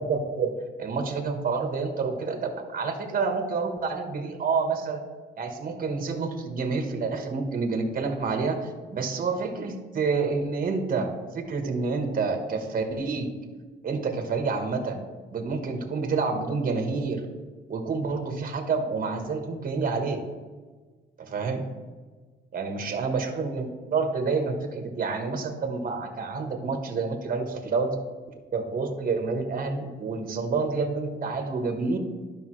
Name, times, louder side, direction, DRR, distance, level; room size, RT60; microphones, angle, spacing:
voice 1, 0.1-5.0 5.4-13.3 13.8-15.0 15.3-17.2 17.7-20.2 21.2-21.7 22.5-28.0 28.5-32.0, right 4 dB, 45° right, 5 dB, 1.2 m, -28 dB
12.0 x 5.3 x 3.1 m, 1.4 s
cardioid pair, 90°, 20 cm